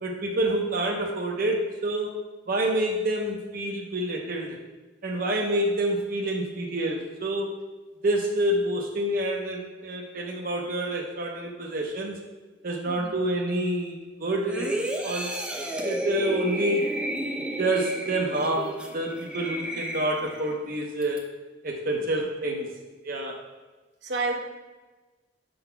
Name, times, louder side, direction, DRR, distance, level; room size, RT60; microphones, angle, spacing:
voice 1, 0.0-2.1 2.5-4.6 5.0-7.6 8.0-12.2 12.6-14.7 15.0-15.3 15.8-16.9 17.6-21.3 21.6-22.7 23.0-23.4, right 1 dB, 50° right, -1 dB, 0.7 m, -27 dB
sound 1, 14.5-20.6 21.0-21.2, right 1 dB, 5° right, 0.7 m, -32 dB
voice 2, 21.9-22.3 24.0-24.4, right 3 dB, 80° right, 2 dB, 1.0 m, -31 dB
6.9 x 3.9 x 5.7 m, 1.2 s
head